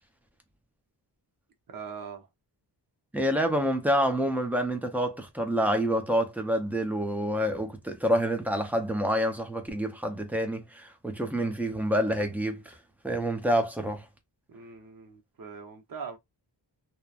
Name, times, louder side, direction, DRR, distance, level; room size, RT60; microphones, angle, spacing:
voice 1, 1.7-2.3 14.5-16.2, right 6 dB, 50° right, 0.7 m, -41 dB
voice 2, 3.1-12.8 13.0-14.1, equal, 5° right, 0.5 m, -27 dB
2.9 x 2.1 x 2.3 m
wide cardioid pair, 130°, 44 cm